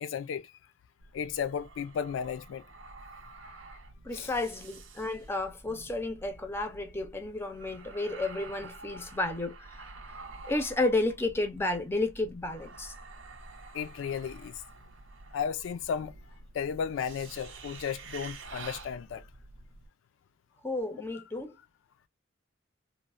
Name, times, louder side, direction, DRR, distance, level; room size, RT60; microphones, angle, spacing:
voice 1, 0.0-0.5 1.1-2.6 3.4-3.5 4.1-4.3 9.0-9.1 13.7-14.6 15.3-16.1 16.5-19.2, left 7 dB, 85° left, 0.3 m, -34 dB
sound 1, 1.0-19.9, right 3 dB, 80° right, 0.6 m, -49 dB
voice 2, 4.0-9.9 10.4-12.9 20.6-21.6, left 2 dB, 15° left, 0.5 m, -32 dB
3.1 x 2.0 x 2.4 m
head